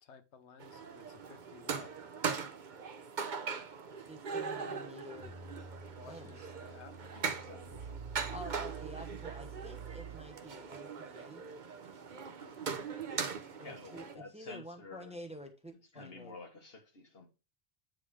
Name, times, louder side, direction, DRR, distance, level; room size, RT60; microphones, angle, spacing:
voice 1, 0.0-1.9 6.0-7.4 12.4-12.8, left 6 dB, 80° left, 1.1 m, -56 dB
sound 1, 0.6-14.2, right 5 dB, 45° right, 0.9 m, -41 dB
voice 2, 4.1-5.4 6.0-6.3 8.3-11.4 13.6-16.4, equal, 5° right, 1.1 m, -49 dB
sound 2, 5.1-10.6, right 6 dB, 90° right, 1.7 m, -48 dB
voice 3, 7.1-8.0 13.5-15.2 15.9-17.3, left 3 dB, 60° left, 1.8 m, -51 dB
9.1 x 3.9 x 4.8 m
omnidirectional pair, 1.1 m